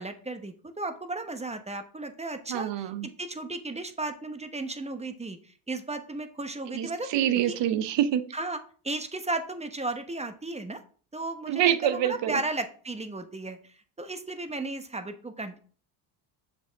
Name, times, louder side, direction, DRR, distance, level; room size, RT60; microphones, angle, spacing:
voice 1, 0.0-7.1 7.5-7.6 8.3-8.6 8.8-10.8 11.1-13.6 14.0-15.6, right 2 dB, 15° right, 8 dB, 0.9 m, -34 dB
voice 2, 2.5-3.1 6.7-8.2 11.5-12.4, right 11 dB, 60° right, 12 dB, 0.9 m, -26 dB
6.8 x 5.3 x 3.5 m, 0.43 s
supercardioid pair, 75°, 49 cm